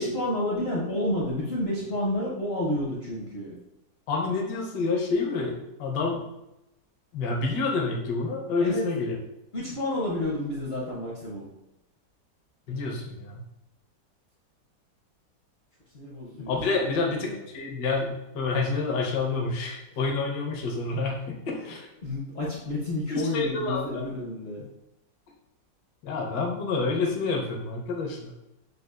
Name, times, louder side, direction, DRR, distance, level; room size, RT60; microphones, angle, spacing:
voice 1, 0.0-3.6 8.6-8.8 9.5-11.5 15.9-17.4 21.6-24.7, left 1 dB, 55° left, -5 dB, 0.7 m, -30 dB
voice 2, 4.1-6.2 7.1-9.2 12.7-13.4 16.4-17.3 17.5-21.9 23.1-23.8 26.0-28.3, left 3 dB, 75° left, 0 dB, 1.3 m, -28 dB
6.5 x 2.4 x 2.4 m, 0.88 s
omnidirectional pair, 1.9 m